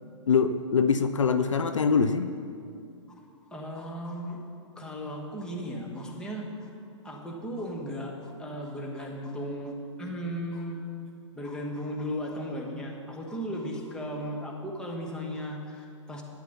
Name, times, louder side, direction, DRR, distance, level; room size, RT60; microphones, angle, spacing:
voice 1, 0.3-2.3, left 5 dB, 75° left, 10 dB, 0.5 m, -23 dB
voice 2, 3.5-4.4 4.7-6.7 7.0-10.8 11.3-16.2, equal, 5° left, -2 dB, 1.4 m, -36 dB
13.0 x 9.5 x 4.0 m, 2.4 s
figure-of-eight pair, 115°, 16 cm